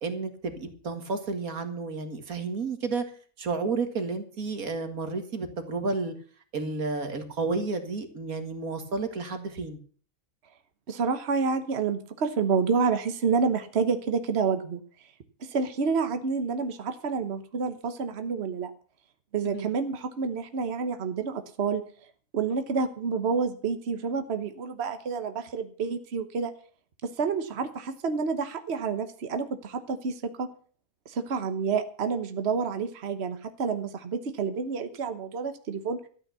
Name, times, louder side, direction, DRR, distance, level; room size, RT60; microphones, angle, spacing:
voice 1, 0.0-3.0 3.4-6.1 6.5-9.8 19.4-19.7, right 4 dB, 85° right, 7 dB, 2.3 m, -31 dB
voice 2, 10.9-14.8 15.4-18.7 19.3-21.8 22.3-26.5 27.0-30.5 31.0-36.0, right 5 dB, 50° right, 8 dB, 1.3 m, -29 dB
13.5 x 8.9 x 6.8 m, 0.44 s
omnidirectional pair, 1.5 m